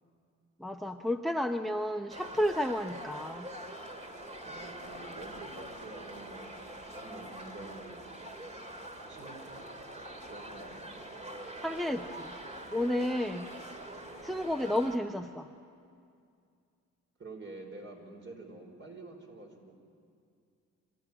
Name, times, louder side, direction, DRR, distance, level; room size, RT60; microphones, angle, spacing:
voice 1, 0.6-3.5 11.6-12.4 12.7-13.5 14.2-15.5, left 1 dB, ahead, 7 dB, 0.7 m, -31 dB
sound 1, 2.1-15.0, right 1 dB, 20° right, 2.3 m, -44 dB
voice 2, 4.4-8.1 9.1-9.8 10.2-11.0 17.2-19.7, right 2 dB, 40° right, 2 dB, 5.0 m, -48 dB
27.0 x 14.5 x 9.9 m, 2.4 s
cardioid pair, 90°, 30 cm